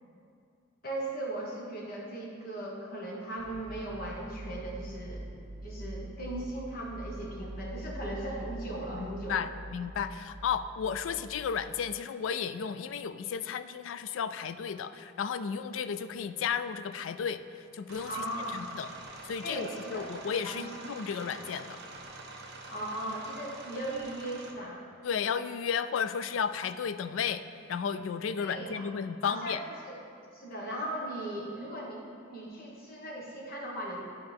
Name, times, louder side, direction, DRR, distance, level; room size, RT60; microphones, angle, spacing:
voice 1, 0.8-5.2 5.6-9.5 18.1-18.6 19.4-20.0 20.4-20.7 22.7-24.8 28.4-28.9 29.2-29.9 30.3-32.0 32.3-34.0, right 1 dB, 50° left, -3 dB, 1.4 m, -38 dB
sound 1, 3.4-11.6, right 1 dB, 5° right, 1.7 m, -44 dB
voice 2, 8.9-18.9 19.3-21.8 25.0-27.4 27.7-29.6, left 7 dB, 80° left, 12 dB, 0.3 m, -33 dB
sound 2, 17.9-24.5, right 3 dB, 60° right, 0.8 m, -46 dB
11.5 x 4.5 x 3.5 m, 2.5 s
head